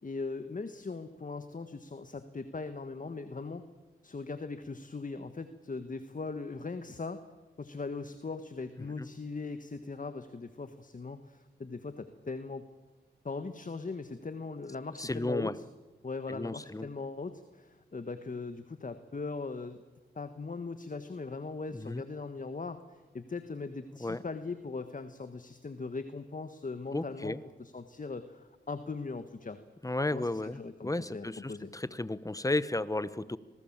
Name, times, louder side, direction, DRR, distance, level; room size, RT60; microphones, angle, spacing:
voice 1, 0.0-3.7 4.0-7.2 7.6-12.7 13.2-15.6 16.0-19.8 20.1-29.6 30.1-31.7, left 4 dB, 40° left, 9 dB, 1.6 m, -40 dB
voice 2, 15.0-15.5 16.3-16.9 21.7-22.0 24.0-24.2 26.9-27.4 29.8-33.4, left 2 dB, 15° left, 16 dB, 1.1 m, -33 dB
25.5 x 19.0 x 7.5 m, 1.2 s
cardioid pair, 50°, 21 cm